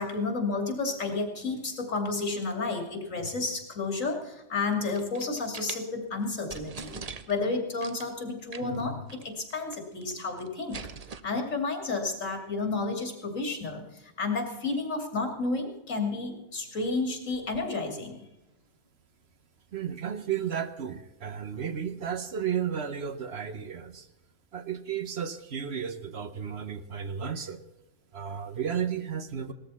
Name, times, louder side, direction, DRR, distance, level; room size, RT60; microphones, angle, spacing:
voice 1, 0.0-7.0 7.3-10.8 11.2-18.2, left 3 dB, 80° left, 4 dB, 3.1 m, -31 dB
sound 1, 4.7-5.8 6.2-6.3 6.5-7.4 7.8-8.1 8.5-8.8 9.1-9.2 9.5-10.1 10.4-11.2, right 5 dB, 40° right, 0.7 m, -42 dB
voice 2, 19.7-24.1 24.5-27.6 28.1-29.5, right 8 dB, 55° right, 10 dB, 1.2 m, -33 dB
18.0 x 13.5 x 4.2 m, 0.97 s
omnidirectional pair, 1.3 m